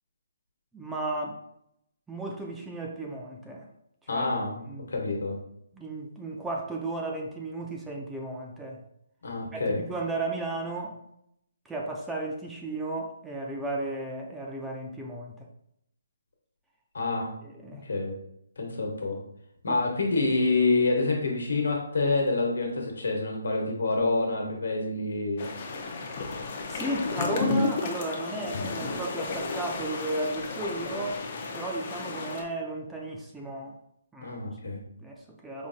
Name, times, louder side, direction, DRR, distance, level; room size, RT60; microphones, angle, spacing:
voice 1, 0.7-1.4 2.1-3.7 4.1-4.3 4.7-4.9 5.7-8.8 9.5-11.0 11.7-15.5 17.4-17.8 19.7-19.8 26.7-31.2 31.5-33.8 34.1-35.7, right 2 dB, 5° right, 0 dB, 0.4 m, -34 dB
voice 2, 4.1-5.3 9.2-9.8 16.9-17.3 17.8-18.1 18.6-19.2 19.6-25.5 34.2-34.8, left 3 dB, 75° left, 1 dB, 1.1 m, -27 dB
sound 1, 25.4-32.4, left 3 dB, 40° left, 0.6 m, -33 dB
5.0 x 2.6 x 2.4 m, 0.75 s
hypercardioid pair, 160°, 0 cm